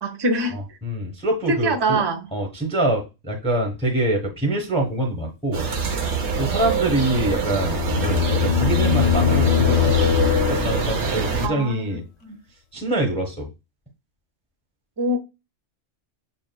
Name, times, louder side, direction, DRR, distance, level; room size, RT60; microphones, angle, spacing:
voice 1, 0.0-0.6 1.5-2.3 11.4-11.9 12.2-12.4 15.0-15.2, right 2 dB, 35° right, 0.4 m, -23 dB
voice 2, 0.5-2.0 2.3-5.7 6.4-10.0 10.5-12.0 12.7-13.5, right 1 dB, 5° left, 0.7 m, -25 dB
sound 1, 5.5-11.5, right 5 dB, 65° right, 1.0 m, -25 dB
sound 2, 7.1-11.1, left 12 dB, 90° left, 1.0 m, -22 dB
6.9 x 2.4 x 2.2 m
omnidirectional pair, 1.3 m